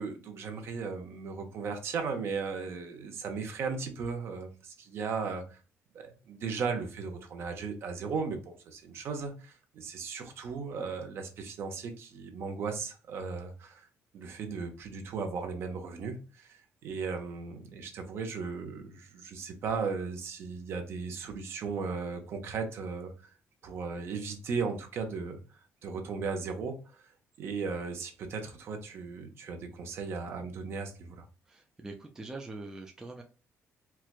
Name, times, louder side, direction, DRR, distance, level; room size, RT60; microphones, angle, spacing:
voice 1, 0.0-5.6 5.9-13.9 14.1-23.1 23.6-25.4 25.8-27.1 27.4-31.2, right 5 dB, 55° right, 0.8 m, -36 dB
voice 2, 31.5-33.2, right 2 dB, 10° right, 0.4 m, -43 dB
4.5 x 2.3 x 2.4 m
cardioid pair, 175°, 5 cm